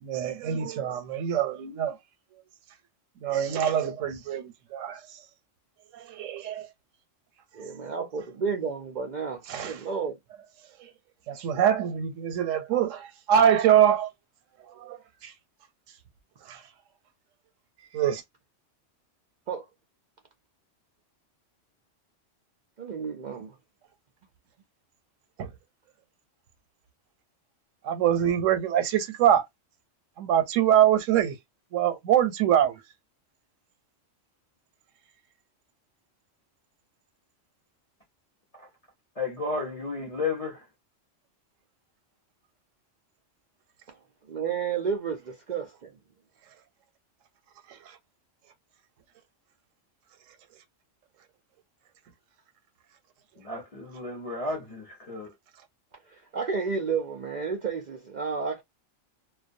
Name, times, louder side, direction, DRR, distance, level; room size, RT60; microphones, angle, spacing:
voice 1, 0.0-2.0 3.2-5.0 5.9-6.7 9.5-9.8 10.8-10.9 11.3-14.1 14.7-15.3 16.5-16.6 17.9-18.2 25.4-25.5 27.8-29.4 30.2-31.3 31.7-32.8, right 10 dB, 85° right, 1.0 m, -24 dB
voice 2, 7.5-10.2 19.5-19.6 22.8-23.5 43.9-44.0 44.3-45.9 56.1-58.6, right 5 dB, 65° right, 0.4 m, -31 dB
voice 3, 39.2-40.7 53.4-55.3, left 3 dB, 40° left, 0.6 m, -33 dB
2.3 x 2.2 x 2.5 m
omnidirectional pair, 1.3 m